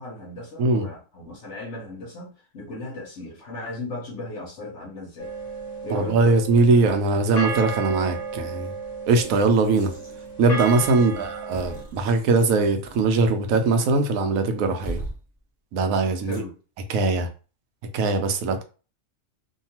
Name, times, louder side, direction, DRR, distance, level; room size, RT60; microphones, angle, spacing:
voice 1, 0.0-5.3 5.8-6.2 11.0-11.3 16.2-16.5, left 2 dB, 65° left, 1.0 m, -36 dB
sound 1, 5.2-11.8, right 4 dB, 35° left, 0.8 m, -34 dB
voice 2, 5.9-8.7 9.1-9.9 10.4-15.0 15.7-16.4 16.9-17.3 17.9-18.6, right 3 dB, 85° right, 1.0 m, -21 dB
sound 2, 9.2-10.3 10.6-13.4 13.6-13.8 14.8-15.2 16.3-16.4, right 1 dB, 35° right, 0.9 m, -39 dB
2.7 x 2.3 x 2.8 m
omnidirectional pair, 1.4 m